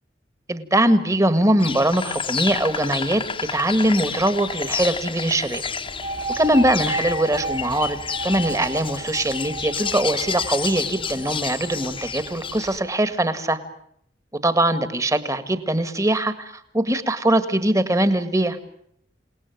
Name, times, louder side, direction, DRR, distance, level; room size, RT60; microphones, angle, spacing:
voice 1, 0.5-3.2 3.5-5.6 6.4-13.6 14.4-18.6, right 1 dB, 15° right, 12 dB, 1.9 m, -21 dB
Insect, 1.6-12.8, left 6 dB, 30° left, 1.2 m, -30 dB
sound 1, 5.8-13.2, right 2 dB, 55° right, 2.7 m, -33 dB
29.0 x 19.0 x 9.3 m, 0.71 s
head